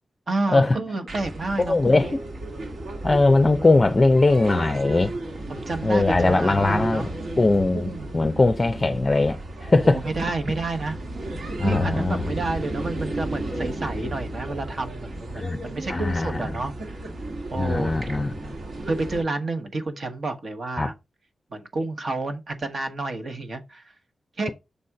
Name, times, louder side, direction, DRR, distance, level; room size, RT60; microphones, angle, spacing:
voice 1, 0.3-2.2 5.5-7.1 7.7-8.2 9.8-11.0 11.6-16.7 17.5-17.9 18.8-20.9 21.5-23.8 24.4-24.5, right 2 dB, 50° right, 1.2 m, -30 dB
sound 1, 1.1-19.2, right 1 dB, 65° right, 1.8 m, -34 dB
voice 2, 1.7-2.2 3.0-5.2 5.8-7.1 7.4-7.9 8.1-10.0 11.6-12.3 15.3-15.6 15.9-16.5 17.6-18.5 20.8-20.9, left 2 dB, 25° left, 0.5 m, -20 dB
6.9 x 4.2 x 4.8 m
wide cardioid pair, 160°, 0 cm